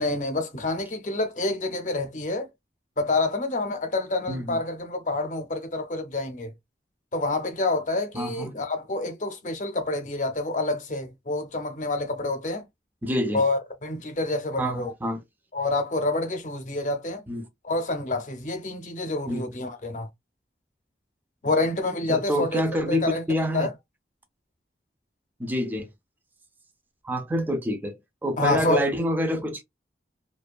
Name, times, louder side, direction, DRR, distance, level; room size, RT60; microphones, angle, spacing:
voice 1, 0.0-2.5 3.0-6.5 7.1-12.6 13.3-14.9 15.5-17.2 17.6-20.1 21.4-23.7 28.4-28.8, left 2 dB, 45° left, 0.6 m, -28 dB
voice 2, 4.3-4.6 8.1-8.5 13.0-13.4 14.6-15.2 17.3-17.5 19.3-19.5 22.1-23.7 25.4-25.9 27.0-29.6, equal, 10° right, 0.3 m, -27 dB
2.5 x 2.2 x 2.3 m
head